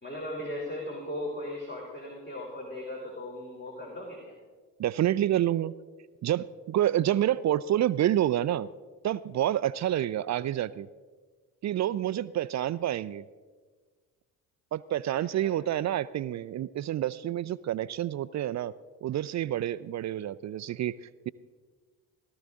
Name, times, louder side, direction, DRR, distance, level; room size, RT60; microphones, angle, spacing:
voice 1, 0.0-4.4 15.1-15.6, left 1 dB, 25° left, -3 dB, 3.3 m, -38 dB
voice 2, 4.8-5.7 6.2-8.7 9.0-10.9 11.6-13.3 14.7-18.7 19.0-21.3, right 12 dB, 45° right, 17 dB, 0.4 m, -28 dB
17.0 x 13.0 x 3.6 m, 1.4 s
hypercardioid pair, 50°, 42 cm